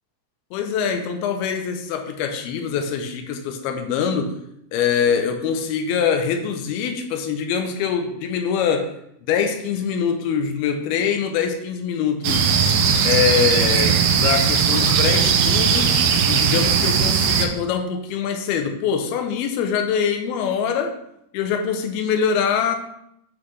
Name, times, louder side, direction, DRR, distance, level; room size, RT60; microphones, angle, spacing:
voice 1, 0.5-4.4 4.7-8.9 9.3-12.6 13.0-21.0 21.3-22.8, left 7 dB, 80° left, 6 dB, 2.4 m, -23 dB
sound 1, 12.2-17.5, right 6 dB, 90° right, 2.1 m, -18 dB
7.9 x 3.8 x 3.2 m, 0.77 s
omnidirectional pair, 4.8 m